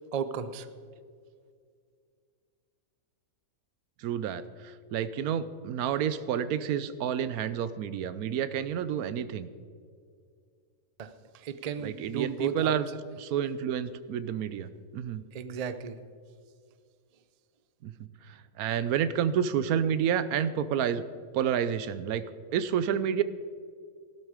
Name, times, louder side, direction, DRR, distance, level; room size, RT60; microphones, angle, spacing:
voice 1, 0.1-0.7 11.0-12.7 15.3-16.0, right 7 dB, 45° right, 12 dB, 0.5 m, -34 dB
voice 2, 4.0-9.5 11.8-12.9 13.2-15.2 17.8-17.9 18.3-21.0 21.3-22.2 22.5-23.2, right 9 dB, 90° right, 14 dB, 1.1 m, -29 dB
16.0 x 12.0 x 4.9 m, 2.1 s
omnidirectional pair, 1.5 m